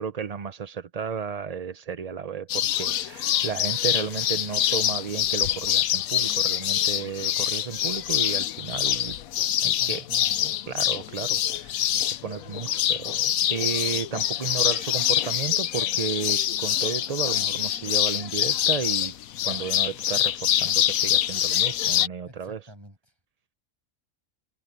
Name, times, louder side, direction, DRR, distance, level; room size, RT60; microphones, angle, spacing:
voice 1, 0.0-9.2 9.6-10.0 10.7-13.2 13.5-19.1 19.4-22.6, right 6 dB, 40° right, 0.6 m, -33 dB
sound 1, 2.5-22.1, left 11 dB, 85° left, 1.2 m, -25 dB
voice 2, 9.6-10.6 22.2-23.1, right 1 dB, 20° right, 6.4 m, -47 dB
omnidirectional pair, 1.4 m